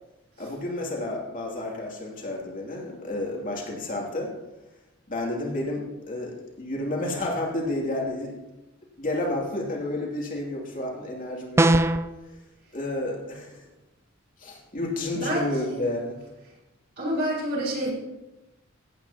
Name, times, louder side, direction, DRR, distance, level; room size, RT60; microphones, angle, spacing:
voice 1, 0.4-4.3 5.1-8.4 9.0-11.7 12.2-12.4 12.7-13.7 14.4-16.2, left 1 dB, 40° left, -2 dB, 2.7 m, -31 dB
sound 1, 11.6-12.1, right 1 dB, 15° right, 0.3 m, -19 dB
voice 2, 15.1-15.8 17.0-17.9, right 1 dB, 55° right, -4 dB, 4.5 m, -28 dB
16.0 x 9.4 x 2.9 m, 1.0 s
head